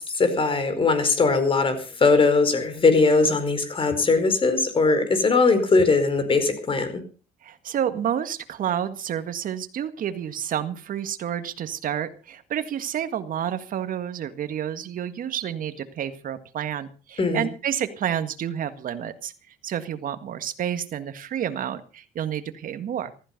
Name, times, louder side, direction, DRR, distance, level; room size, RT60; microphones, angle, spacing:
voice 1, 0.0-7.0 17.2-17.5, left 3 dB, 30° left, 10 dB, 4.7 m, -20 dB
voice 2, 7.4-19.3 19.6-23.1, right 9 dB, 55° right, 10 dB, 1.8 m, -29 dB
15.5 x 14.5 x 5.3 m, 0.36 s
cardioid pair, 110°, 17 cm